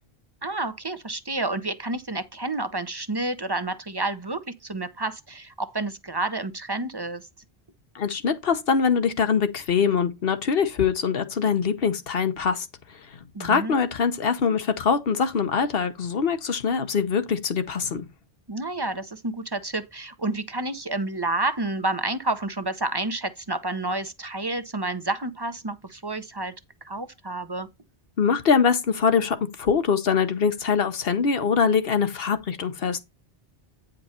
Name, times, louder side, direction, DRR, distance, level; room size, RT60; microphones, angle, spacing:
voice 1, 0.4-7.3 13.3-13.8 18.5-26.5 26.8-27.7, right 2 dB, 25° right, 0.7 m, -29 dB
voice 2, 7.9-13.0 13.4-18.1 28.2-33.0, left 6 dB, 70° left, 1.1 m, -23 dB
9.2 x 5.2 x 4.3 m
omnidirectional pair, 1.0 m